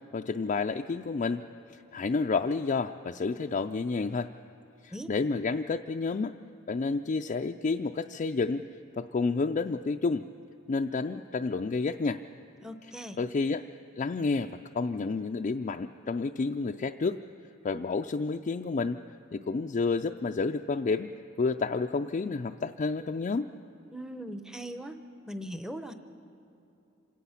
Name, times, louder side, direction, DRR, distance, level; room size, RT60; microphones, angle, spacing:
voice 1, 0.1-1.4 1.7-4.3 4.8-6.3 6.7-8.6 9.0-10.2 10.7-12.2 13.2-13.7 14.0-17.2 17.6-19.0 19.3-21.1 21.4-23.5, left 4 dB, 35° left, 4 dB, 0.4 m, -30 dB
voice 2, 12.6-13.2 23.9-25.0 25.3-25.9, equal, 5° right, 8 dB, 0.7 m, -39 dB
27.0 x 17.5 x 5.7 m, 2.8 s
head